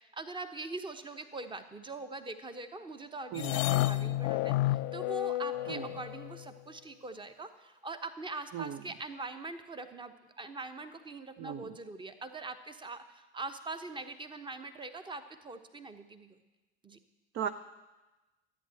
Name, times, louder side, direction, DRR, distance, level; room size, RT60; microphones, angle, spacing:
voice 1, 0.0-16.4 16.8-17.0, right 3 dB, 15° right, 10 dB, 1.0 m, -43 dB
sound 1, 3.4-6.4, left 16 dB, 35° left, 0.4 m, -31 dB
voice 2, 11.4-11.7 17.3-17.5, right 9 dB, 30° right, 11 dB, 0.5 m, -37 dB
14.0 x 9.0 x 7.7 m, 1.1 s
figure-of-eight pair, 75°, 36 cm